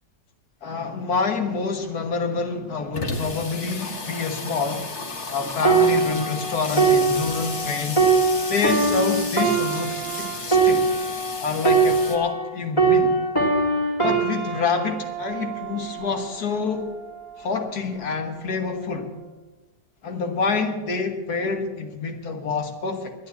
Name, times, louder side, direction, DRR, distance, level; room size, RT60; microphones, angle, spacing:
voice 1, 0.6-4.9 5.3-8.1 8.5-10.9 11.4-13.2 14.0-16.9 17.4-19.2 20.0-23.1, left 4 dB, 65° left, 1.8 m, -27 dB
Water tap faucet / Sink (filling or washing), 1.5-1.6 1.9-2.0 2.3-12.2, left 3 dB, 45° left, 1.5 m, -33 dB
sound 1, 5.6-12.5 12.8-16.4 17.0-17.2, right 4 dB, 20° left, 2.0 m, -22 dB
12.0 x 9.6 x 8.1 m
omnidirectional pair, 1.8 m